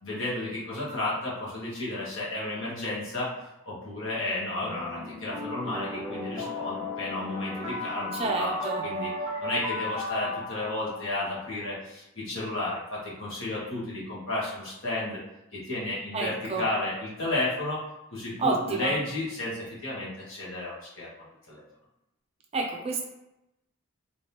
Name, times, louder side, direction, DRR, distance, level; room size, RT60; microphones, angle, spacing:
voice 1, 0.0-3.3 3.7-9.1 9.4-15.2 15.5-17.8 18.1-21.1 21.5-21.6, left 2 dB, 65° left, -7 dB, 1.4 m, -32 dB
sound 1, 4.6-11.6, left 2 dB, ahead, 1.0 m, -35 dB
voice 2, 8.1-8.8 16.1-16.6 18.4-18.9 22.5-23.0, right 3 dB, 30° right, 0 dB, 0.4 m, -29 dB
3.4 x 2.9 x 2.9 m, 0.91 s
head